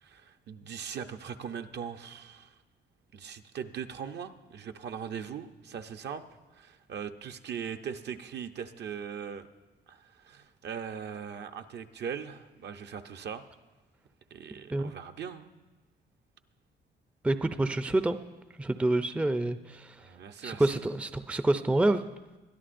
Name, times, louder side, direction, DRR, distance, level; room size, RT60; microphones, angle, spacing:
voice 1, 0.0-2.5 3.1-6.2 6.5-9.5 9.9-13.5 14.3-15.5 20.0-20.6, right 7 dB, 60° right, 8 dB, 0.7 m, -40 dB
voice 2, 17.2-18.2 18.6-20.0 20.4-22.0, right 2 dB, 5° right, 10 dB, 0.4 m, -27 dB
21.5 x 12.5 x 2.6 m, 1.1 s
cardioid pair, 90°, 20 cm